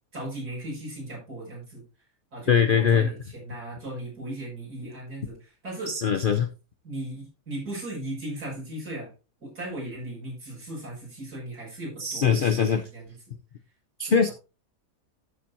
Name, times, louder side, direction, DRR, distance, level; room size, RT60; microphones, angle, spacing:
voice 1, 0.1-1.8 2.3-5.9 6.8-9.1 9.4-13.3 14.0-14.3, right 1 dB, 70° right, -4 dB, 6.8 m, -37 dB
voice 2, 2.5-3.1 5.9-6.5 12.0-12.8 14.0-14.3, left 7 dB, 55° left, 9 dB, 0.5 m, -21 dB
12.5 x 7.4 x 2.7 m, 0.30 s
omnidirectional pair, 1.7 m